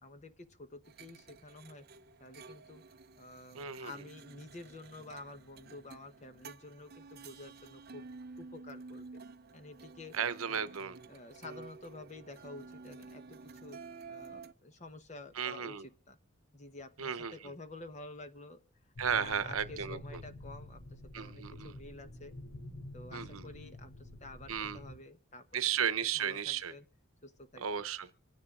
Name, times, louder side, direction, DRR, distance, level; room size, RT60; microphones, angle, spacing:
voice 1, 0.0-1.8 2.2-2.8 3.2-8.1 8.4-9.2 9.5-10.2 10.5-10.7 11.1-13.8 14.1-16.2 16.5-18.6 19.1-22.4 22.9-25.6 26.0-26.8 27.2-27.7, left 2 dB, 35° left, 1.0 m, -50 dB
sound 1, 0.8-14.5, right 4 dB, 45° right, 0.6 m, -51 dB
voice 2, 3.5-3.9 10.1-11.0 15.4-15.9 17.0-17.3 19.0-20.2 21.1-21.7 23.1-23.5 24.5-24.8 25.5-26.7 27.6-28.1, right 8 dB, 80° right, 0.9 m, -34 dB
sound 2, 19.0-25.0, left 1 dB, 70° left, 3.1 m, -48 dB
26.0 x 10.0 x 2.5 m
head